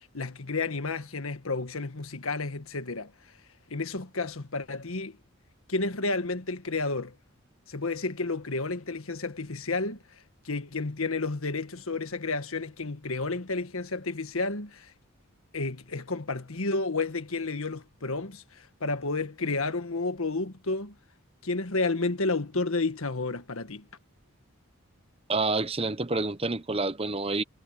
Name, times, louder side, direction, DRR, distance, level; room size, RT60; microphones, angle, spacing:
voice 1, 0.1-3.1 3.7-5.2 5.7-7.1 7.7-10.0 10.4-14.9 15.5-20.9 21.4-23.9, left 3 dB, 80° left, 1.6 m, -31 dB
voice 2, 25.3-27.4, right 3 dB, 25° right, 1.0 m, -28 dB
head